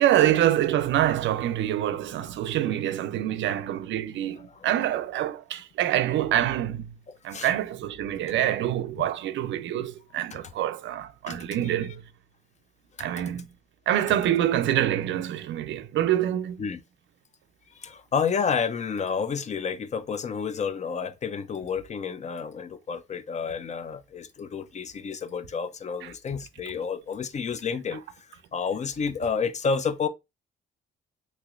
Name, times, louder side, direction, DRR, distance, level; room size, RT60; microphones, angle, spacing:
voice 1, 0.0-6.9 7.2-12.0 13.0-13.4 13.9-16.6 26.0-26.1, right 12 dB, 70° right, 0.4 m, -26 dB
voice 2, 7.1-7.5 11.3-11.4 11.6-11.7 13.0-13.1 16.6-16.8 17.7-28.0 28.5-30.1, left 6 dB, 35° left, 0.4 m, -30 dB
3.1 x 2.9 x 2.4 m
cardioid pair, 90°, 20 cm